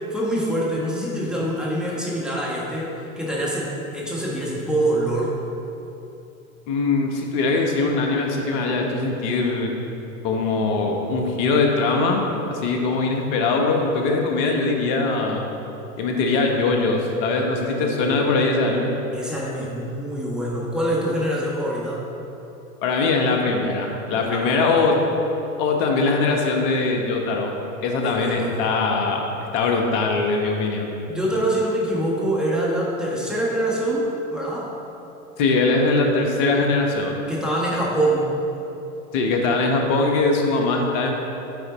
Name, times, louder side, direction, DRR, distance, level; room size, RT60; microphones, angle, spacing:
voice 1, 0.0-5.4 17.6-18.4 19.1-22.0 24.3-24.9 28.0-28.6 31.1-34.7 37.3-38.3, right 1 dB, ahead, -6 dB, 1.4 m, -25 dB
voice 2, 6.7-9.7 10.2-12.2 12.5-15.5 16.0-18.9 22.8-25.0 25.6-27.5 27.8-29.2 29.5-30.9 35.4-37.1 39.1-41.1, left 3 dB, 50° left, 2 dB, 1.2 m, -21 dB
9.2 x 4.1 x 4.1 m, 2.9 s
hypercardioid pair, 100°, 43 cm